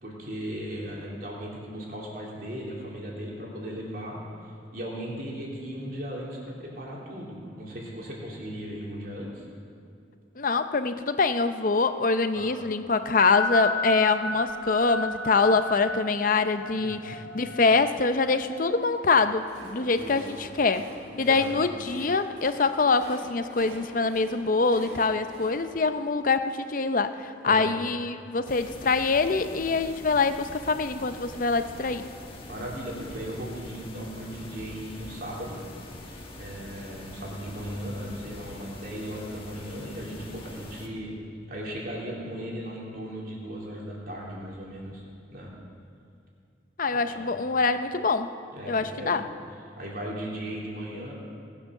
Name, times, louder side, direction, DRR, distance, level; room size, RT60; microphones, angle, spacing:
voice 1, 0.0-9.4 12.3-12.5 16.8-17.2 19.9-20.3 21.1-21.6 27.4-27.7 32.4-35.6 36.4-41.1 41.5-45.0 45.3-45.5 46.9-47.3 48.5-49.2 49.8-51.1, equal, 55° right, -4 dB, 3.2 m, -37 dB
voice 2, 10.4-20.9 21.2-32.0 46.8-48.3 48.7-49.2, left 4 dB, 45° left, 10 dB, 0.6 m, -24 dB
sound 1, 13.3-18.7, left 3 dB, 75° left, 1.1 m, -34 dB
Train, 19.0-27.1, equal, 70° right, 3.9 m, -46 dB
sound 2, 28.5-40.9, left 1 dB, 30° left, 1.4 m, -44 dB
19.0 x 8.7 x 6.5 m, 2.4 s
head